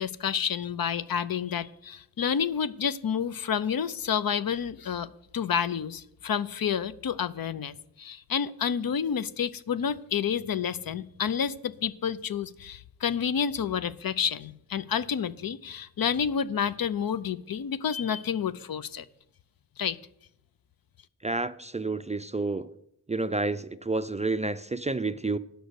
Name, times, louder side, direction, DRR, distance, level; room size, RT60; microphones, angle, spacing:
voice 1, 0.0-19.0 19.8-20.0, left 7 dB, 65° left, 0.6 m, -29 dB
voice 2, 21.2-22.7 23.1-25.4, right 3 dB, 20° right, 0.4 m, -29 dB
8.1 x 6.3 x 8.1 m
cardioid pair, 55°, 38 cm